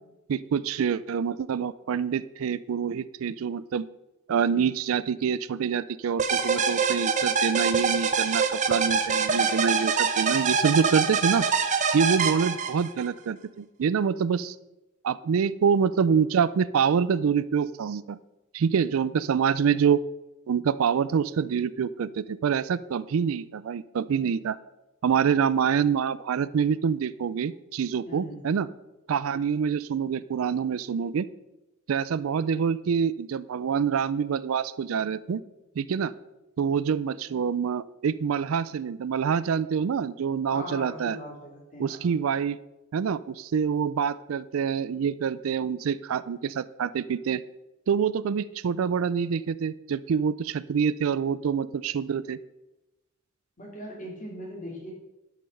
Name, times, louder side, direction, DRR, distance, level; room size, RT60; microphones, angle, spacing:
voice 1, 0.3-3.9 4.3-11.5 11.9-14.6 15.0-18.2 18.5-20.0 20.5-24.6 25.0-28.7 29.1-31.3 31.9-35.4 35.8-36.1 36.6-41.2 41.8-42.6 42.9-47.4 47.9-52.4, right 7 dB, 75° right, 17 dB, 0.4 m, -26 dB
sound 1, 6.2-13.1, right 5 dB, 35° right, 0.8 m, -25 dB
voice 2, 28.0-28.4 40.5-42.2 53.6-54.9, equal, 40° left, -1 dB, 2.8 m, -40 dB
10.5 x 6.7 x 5.3 m, 0.98 s
head